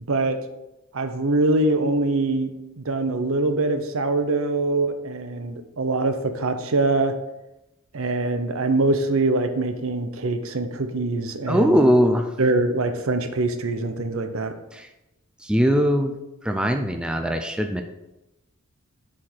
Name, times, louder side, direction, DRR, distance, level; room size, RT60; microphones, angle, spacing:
voice 1, 0.1-0.4 0.9-7.2 7.9-11.8 12.4-14.6, right 2 dB, 70° right, 8 dB, 0.7 m, -23 dB
voice 2, 11.5-12.3 14.7-14.9 15.4-16.2 16.4-17.8, equal, 5° right, 5 dB, 0.4 m, -20 dB
7.2 x 4.8 x 4.5 m, 0.95 s
head